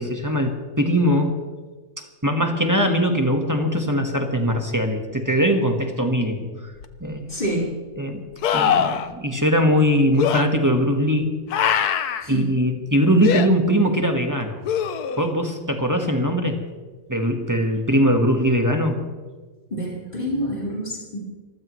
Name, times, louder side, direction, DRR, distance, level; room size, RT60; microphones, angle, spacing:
voice 1, 0.0-1.4 2.2-6.5 7.0-7.3 8.0-8.2 8.5-11.3 12.3-14.6 15.2-16.6 17.1-19.0, equal, 10° right, 3 dB, 1.3 m, -21 dB
sound 1, 6.8-6.9 8.4-9.1 10.2-10.4 11.5-12.3 13.2-13.5 14.7-15.3 18.5-18.6, left 8 dB, 65° left, 1.2 m, -22 dB
voice 2, 7.3-7.7 12.2-12.5 19.7-21.2, equal, 25° left, -5 dB, 4.6 m, -27 dB
25.5 x 14.5 x 3.2 m, 1.3 s
omnidirectional pair, 2.0 m